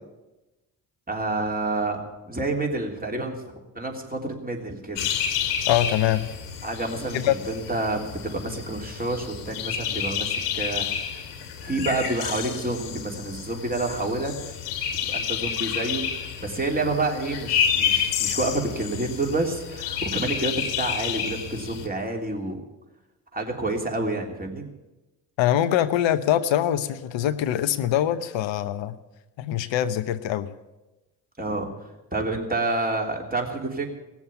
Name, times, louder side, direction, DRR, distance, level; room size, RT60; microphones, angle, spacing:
voice 1, 1.1-3.3 3.8-5.1 6.6-11.3 11.6-14.4 15.0-22.6 23.3-24.6 31.4-31.7 32.1-33.9, right 2 dB, 20° right, 1 dB, 3.3 m, -28 dB
sound 1, 5.0-21.9, left 8 dB, 85° left, 2.0 m, -30 dB
voice 2, 5.7-6.3 7.1-7.3 25.4-29.0 29.4-30.5, left 11 dB, 70° left, 12 dB, 0.9 m, -23 dB
17.5 x 7.2 x 9.9 m, 1.1 s
hypercardioid pair, 45°, 47 cm